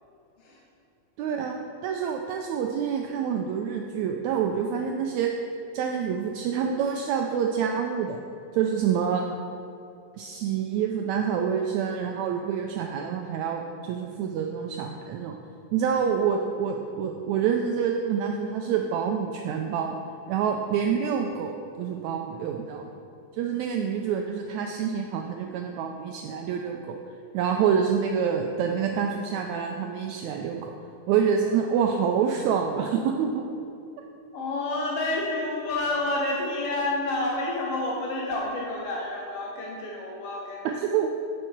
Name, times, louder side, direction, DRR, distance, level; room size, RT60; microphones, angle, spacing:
voice 1, 1.2-1.5 1.8-5.3 5.7-8.2 8.5-9.3 10.1-15.3 15.7-19.9 20.3-22.9 23.3-27.0 27.3-30.7 31.1-33.5 40.8-41.1, right 7 dB, 85° right, 3 dB, 1.6 m, -27 dB
voice 2, 34.3-40.9, left 2 dB, 75° left, -2 dB, 1.4 m, -29 dB
7.8 x 7.5 x 4.5 m, 2.7 s
omnidirectional pair, 3.7 m